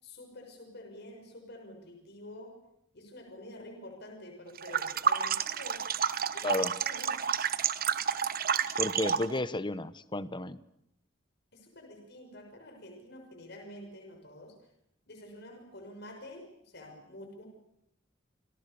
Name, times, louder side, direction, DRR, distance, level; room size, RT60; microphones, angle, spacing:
voice 1, 0.0-2.5 2.9-5.9 6.3-6.6 6.8-7.2 11.5-14.5 15.1-17.5, left 1 dB, 60° left, 3 dB, 6.5 m, -48 dB
sound 1, 4.6-9.4, right 7 dB, 50° right, 1.1 m, -30 dB
voice 2, 8.8-10.6, left 2 dB, 25° left, 15 dB, 1.1 m, -32 dB
29.5 x 27.0 x 6.9 m, 0.79 s
head